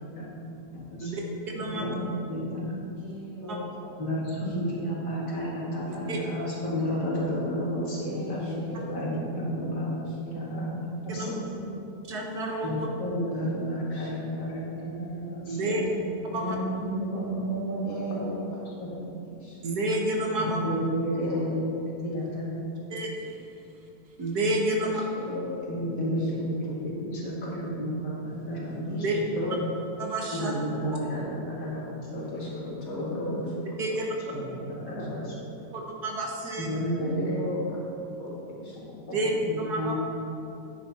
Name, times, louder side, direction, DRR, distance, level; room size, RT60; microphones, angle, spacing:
voice 1, 0.0-1.1 1.7-2.7 4.0-11.7 12.6-18.2 18.8-18.9 20.5-22.6 25.7-29.5 30.3-32.2 33.0-33.4 34.3-35.5 36.6-37.5 38.7-39.9, equal, 75° left, -5 dB, 2.7 m, -32 dB
voice 2, 2.9-4.0 8.0-9.1 13.0-14.1 17.8-19.1 19.4-19.6 21.2-21.6 24.8-25.7 26.0-26.3 28.8-29.6 32.3-33.4 37.0-37.9 38.2-38.3 38.6-38.8, left 1 dB, 55° left, -6 dB, 2.6 m, -37 dB
voice 3, 5.9-6.2 11.1-11.3 12.1-12.7 15.5-15.8 16.3-16.6 19.6-20.6 22.9-23.4 24.2-25.0 29.0-29.2 30.0-30.5 33.8-34.0 35.7-36.7 39.1-39.3 39.6-39.9, right 2 dB, 65° right, 0 dB, 1.8 m, -29 dB
10.0 x 8.2 x 4.2 m, 2.8 s
omnidirectional pair, 1.8 m